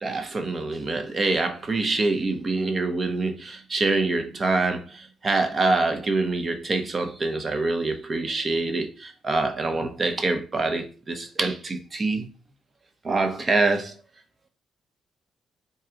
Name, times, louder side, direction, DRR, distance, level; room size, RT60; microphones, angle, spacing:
voice 1, 0.0-12.3 13.0-13.9, right 3 dB, 35° right, 6 dB, 0.8 m, -25 dB
3.8 x 2.3 x 3.9 m, 0.36 s
cardioid pair, 90°, 0 cm